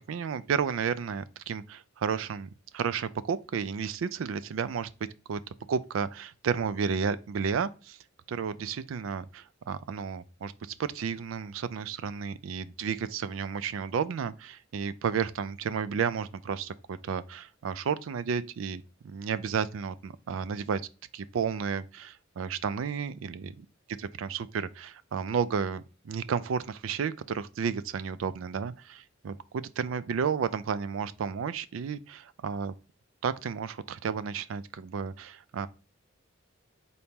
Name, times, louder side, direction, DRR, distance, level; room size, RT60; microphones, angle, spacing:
voice 1, 0.1-4.9 5.3-5.4 5.7-8.0 8.3-20.8 21.1-23.6 24.2-32.7 33.2-35.7, right 6 dB, 80° right, 0.4 m, -32 dB
4.1 x 2.9 x 3.4 m
head